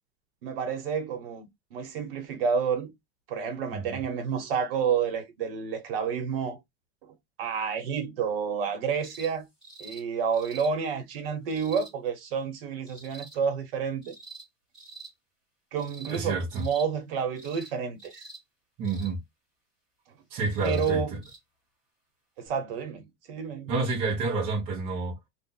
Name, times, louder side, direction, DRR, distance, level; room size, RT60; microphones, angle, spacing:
voice 1, 0.4-2.9 3.3-6.6 7.4-9.5 9.8-14.1 15.7-18.2 20.6-21.1 22.4-23.7, right 6 dB, 60° right, 1.3 m, -30 dB
voice 2, 3.7-4.0 16.1-16.7 18.8-19.2 20.3-21.2 23.7-25.2, right 3 dB, 25° right, 0.8 m, -29 dB
sound 1, 9.0-9.3 9.6-10.0 10.3-10.7 11.5-11.9 12.9-13.4 14.0-14.5 14.7-15.1 15.8-16.2 16.5-16.9 17.4-17.7 18.0-18.4 18.8-19.1 20.4-20.9 21.2-21.4 22.5-22.6, right 3 dB, ahead, 1.6 m, -46 dB
2.7 x 2.4 x 3.8 m
supercardioid pair, 180°, 32 cm